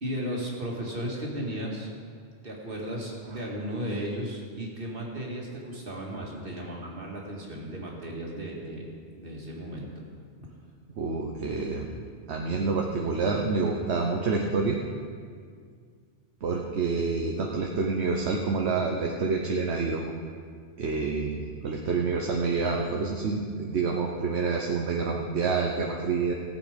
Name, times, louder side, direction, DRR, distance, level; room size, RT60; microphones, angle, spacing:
voice 1, 0.0-1.9 2.4-8.9 9.1-9.9, equal, 50° right, -2 dB, 2.5 m, -35 dB
voice 2, 11.0-11.9 12.3-14.8 16.4-20.1 20.8-26.3, right 4 dB, 70° right, 1 dB, 1.2 m, -28 dB
18.0 x 7.8 x 5.2 m, 2.1 s
omnidirectional pair, 1.2 m